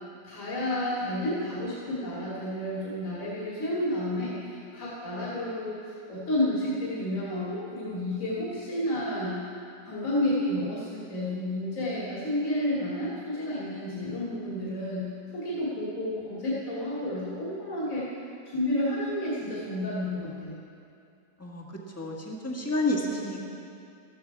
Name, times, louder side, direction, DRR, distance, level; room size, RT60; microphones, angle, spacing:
voice 1, 0.2-9.4 9.8-18.0 18.5-20.6, left 1 dB, 45° left, -8 dB, 2.9 m, -31 dB
voice 2, 21.9-23.4, left 1 dB, 10° left, -2 dB, 1.6 m, -29 dB
14.5 x 14.0 x 4.7 m, 2.5 s
omnidirectional pair, 1.9 m